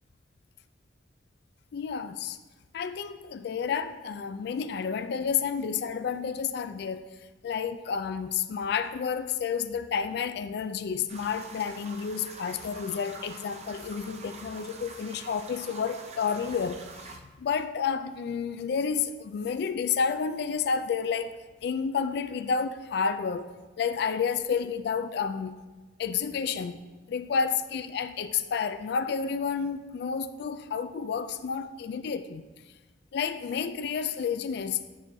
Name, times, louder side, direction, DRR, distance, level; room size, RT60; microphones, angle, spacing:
voice 1, 1.7-2.4 2.7-7.0 7.4-21.3 21.6-23.5 23.8-25.6 26.0-26.8 27.1-32.5 33.1-34.8, left 6 dB, 65° left, 0.3 m, -30 dB
sound 1, 11.1-17.2, right 4 dB, 40° right, 0.6 m, -46 dB
9.7 x 6.2 x 2.7 m
head